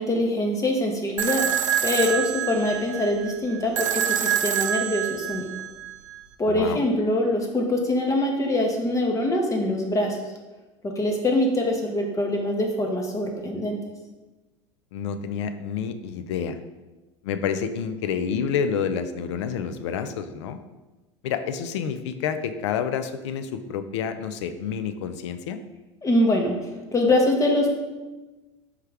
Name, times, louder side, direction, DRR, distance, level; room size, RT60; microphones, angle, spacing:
voice 1, 0.0-1.4 1.8-5.5 6.4-10.2 10.8-13.8 26.0-26.5 26.9-27.8, left 1 dB, 20° left, 2 dB, 0.7 m, -23 dB
sound 1, 1.2-6.2, right 9 dB, 85° right, 0.4 m, -26 dB
voice 2, 6.4-6.8 14.9-16.6 17.2-20.6 21.2-25.6, left 7 dB, 70° left, 10 dB, 0.4 m, -29 dB
4.7 x 3.3 x 3.3 m, 1.1 s
hypercardioid pair, 85°, 16 cm